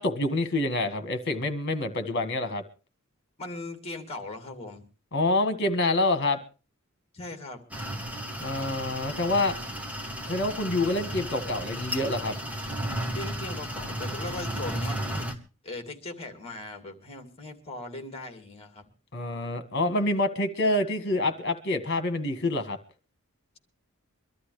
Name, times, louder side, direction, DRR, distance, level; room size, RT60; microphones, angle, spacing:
voice 1, 0.0-2.6 5.1-6.4 8.4-9.5 10.3-12.4 19.1-22.8, left 2 dB, 55° left, 10 dB, 1.8 m, -27 dB
voice 2, 3.4-4.8 7.1-7.6 13.1-15.3 15.6-18.9, left 2 dB, 30° left, 6 dB, 2.6 m, -39 dB
sound 1, 7.7-15.3, right 1 dB, 5° right, 1.7 m, -34 dB
24.0 x 12.5 x 3.3 m, 0.32 s
head